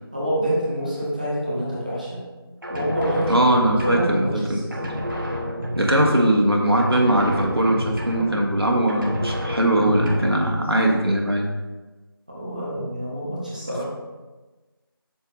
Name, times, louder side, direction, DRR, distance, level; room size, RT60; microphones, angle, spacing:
voice 1, 0.1-2.2 2.7-3.4 3.8-4.8 12.3-13.8, equal, 20° right, -7 dB, 1.1 m, -26 dB
sound 1, 2.6-4.5 4.7-6.5 6.8-8.6 8.9-10.6, equal, 60° right, 1.8 m, -29 dB
voice 2, 3.3-4.6 5.7-11.5, right 1 dB, 80° right, 0 dB, 1.5 m, -20 dB
7.9 x 6.4 x 2.7 m, 1.2 s
figure-of-eight pair, 175°, 13 cm